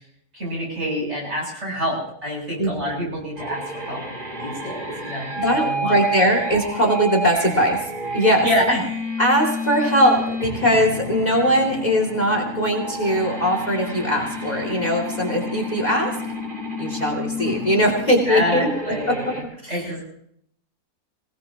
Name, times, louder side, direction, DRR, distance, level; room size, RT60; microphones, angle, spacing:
voice 1, 0.3-4.0 4.4-6.0 8.4-9.0 17.9-18.0 18.3-19.4 19.7-20.0, equal, 50° right, -2 dB, 8.2 m, -26 dB
voice 2, 2.6-3.2 5.3-7.8 8.1-8.5 9.2-16.1 16.8-18.7 19.6-20.0, equal, 30° left, 1 dB, 2.5 m, -20 dB
sound 1, 3.4-19.4, equal, 35° right, 3.0 m, -30 dB
26.0 x 18.0 x 2.9 m, 0.69 s
omnidirectional pair, 1.5 m